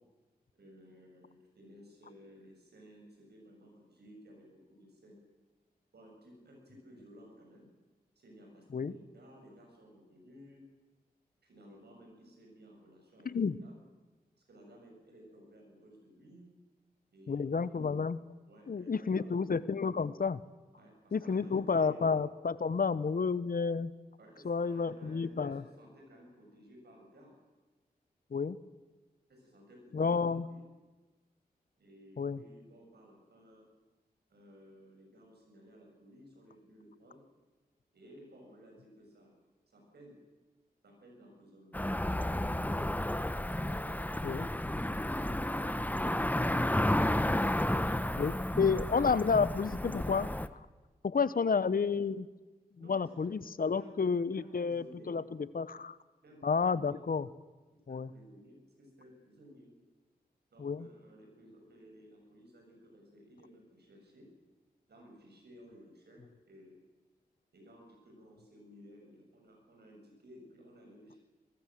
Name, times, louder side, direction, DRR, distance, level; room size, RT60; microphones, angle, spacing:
voice 1, 0.6-5.2 5.9-7.7 8.2-10.6 11.4-13.8 14.4-16.5 17.1-18.0 18.5-19.5 20.7-22.1 24.2-27.3 29.3-30.7 31.8-33.6 34.3-37.2 37.9-39.3 39.7-40.2 40.8-42.7 49.1-49.8 51.3-51.5 52.8-53.3 53.6-55.2 56.2-57.0 57.9-59.7 60.5-64.3 64.9-66.8 67.5-71.2, equal, 80° right, 1 dB, 7.7 m, -56 dB
voice 2, 13.2-13.6 17.3-18.2 18.7-20.4 21.1-23.9 24.4-25.6 28.3-28.6 29.9-30.4 32.2-32.4 44.2-44.5 48.2-50.6 51.0-52.3 52.9-55.2 55.5-56.0 56.4-57.3 57.9-58.1 60.6-60.9, left 5 dB, 60° left, 16 dB, 1.0 m, -30 dB
Cricket / Motor vehicle (road), 41.7-50.5, left 1 dB, 10° left, 1.1 m, -32 dB
23.0 x 19.5 x 7.6 m, 1.2 s
cardioid pair, 40°, 17 cm